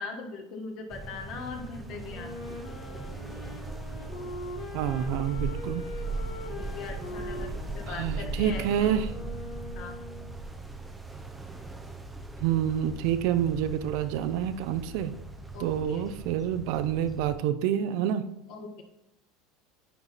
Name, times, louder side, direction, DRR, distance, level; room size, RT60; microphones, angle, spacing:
voice 1, 0.0-2.4 6.2-9.0 9.7-10.0 15.5-16.0 18.5-18.8, left 4 dB, 50° left, 4 dB, 1.5 m, -40 dB
sound 1, 0.9-17.4, right 2 dB, 5° right, 0.7 m, -39 dB
Wind instrument woodwind instrument, 2.0-10.5, left 2 dB, 70° left, 2.0 m, -42 dB
voice 2, 4.7-5.8 7.9-9.1 12.4-15.1 15.6-18.2, right 10 dB, 65° right, 11 dB, 0.6 m, -28 dB
9.9 x 4.6 x 4.1 m, 0.84 s
supercardioid pair, 140°, 0 cm